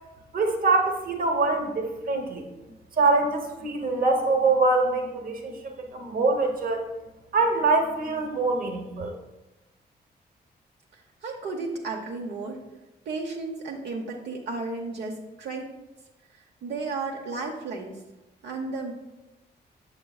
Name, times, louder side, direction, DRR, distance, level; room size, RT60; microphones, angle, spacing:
voice 1, 0.3-2.5 3.0-6.8 7.3-9.1, right 3 dB, 55° right, 3 dB, 1.0 m, -24 dB
voice 2, 11.2-12.6 13.1-15.7 16.6-18.0 18.4-18.9, right 3 dB, 80° right, 0 dB, 0.8 m, -33 dB
8.1 x 6.6 x 2.4 m, 1.0 s
wide cardioid pair, 135°, 17 cm